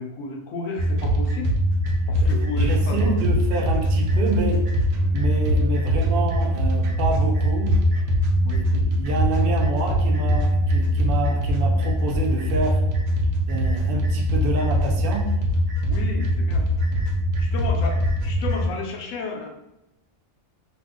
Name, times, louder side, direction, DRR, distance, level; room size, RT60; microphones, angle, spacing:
voice 1, 0.0-1.5 2.1-3.1 8.4-8.6 15.9-16.7 17.4-19.5, left 3 dB, 75° left, 1 dB, 1.0 m, -32 dB
sound 1, 0.8-18.7, equal, 80° right, 1.0 m, -22 dB
voice 2, 2.2-4.7 5.1-7.8 8.5-12.8 13.5-15.3 17.6-17.7, right 2 dB, 55° right, 1 dB, 0.7 m, -28 dB
2.7 x 2.4 x 3.6 m, 0.90 s
omnidirectional pair, 1.4 m